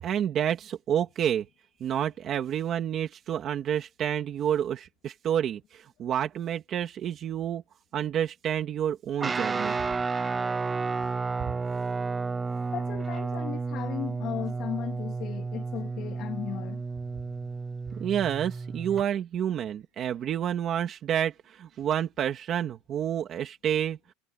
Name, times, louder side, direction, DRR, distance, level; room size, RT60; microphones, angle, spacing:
voice 1, 0.0-1.5 1.8-7.6 7.9-9.8 18.0-24.0, right 9 dB, 30° right, 2.3 m, -29 dB
Guitar, 9.2-19.0, right 4 dB, 10° right, 0.7 m, -32 dB
voice 2, 12.7-16.9, left 12 dB, 35° left, 3.2 m, -36 dB
cardioid pair, 175°, 0 cm